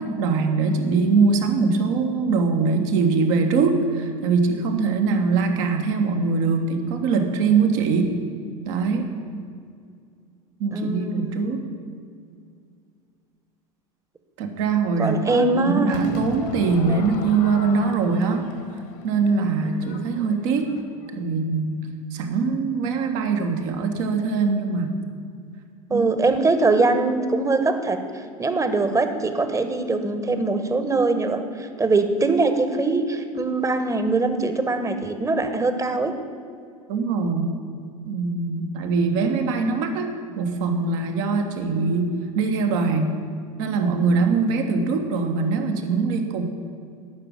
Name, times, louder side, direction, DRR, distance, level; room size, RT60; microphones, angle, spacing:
voice 1, 0.0-8.1 8.6-9.1 10.6-11.6 14.4-18.4 19.0-20.7 21.1-21.8 22.1-24.9 25.9-26.1 36.9-37.5 38.0-40.1 40.4-43.2 43.6-46.4, right 4 dB, 65° right, 4 dB, 1.5 m, -22 dB
voice 2, 10.7-11.4 15.0-16.0 16.9-17.0 25.9-28.0 28.4-36.1, right 3 dB, 15° right, 8 dB, 1.2 m, -22 dB
Crowd / Fireworks, 15.9-21.2, left 6 dB, 55° left, 1.5 m, -39 dB
11.5 x 6.0 x 8.7 m, 2.3 s
hypercardioid pair, 75°, 18 cm